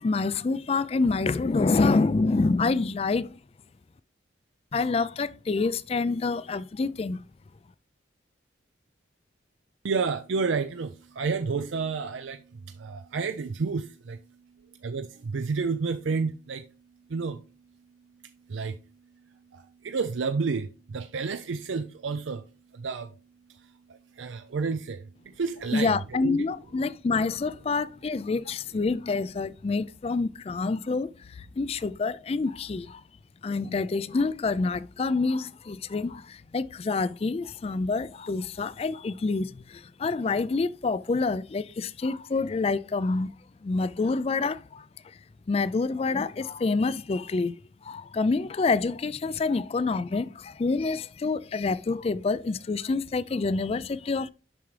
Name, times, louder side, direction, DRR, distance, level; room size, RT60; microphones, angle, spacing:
voice 1, 0.0-3.4 4.7-7.2 25.7-33.0 33.4-43.3 43.6-45.2 45.5-54.3, left 3 dB, 30° left, 0.3 m, -27 dB
voice 2, 9.8-16.7 17.1-17.5 18.2-22.5 22.7-23.1 23.5-25.9 26.2-26.4, right 4 dB, 75° right, 0.5 m, -31 dB
7.4 x 5.8 x 3.3 m
head